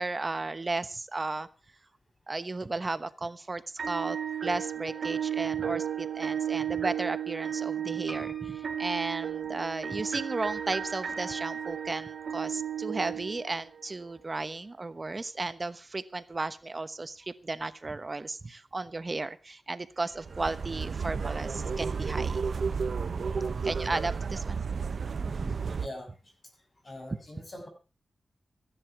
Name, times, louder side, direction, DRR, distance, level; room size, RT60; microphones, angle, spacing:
voice 1, 0.0-1.5 2.3-4.2 4.4-22.5 23.6-24.6 25.2-25.5, right 3 dB, 35° right, 12 dB, 1.1 m, -34 dB
sound 1, 3.8-13.8, right 9 dB, 80° right, 2.3 m, -34 dB
Piano, 8.1-10.1 10.7-11.4 11.7-11.8 12.0-12.1, left 1 dB, 15° left, 4.8 m, -50 dB
sound 2, 20.1-25.9, right 5 dB, 65° right, 0.8 m, -32 dB
voice 2, 25.7-26.3 26.8-27.7, left 1 dB, 40° left, 4 dB, 6.6 m, -43 dB
15.5 x 11.0 x 6.0 m, 0.34 s
wide cardioid pair, 90°, 0 cm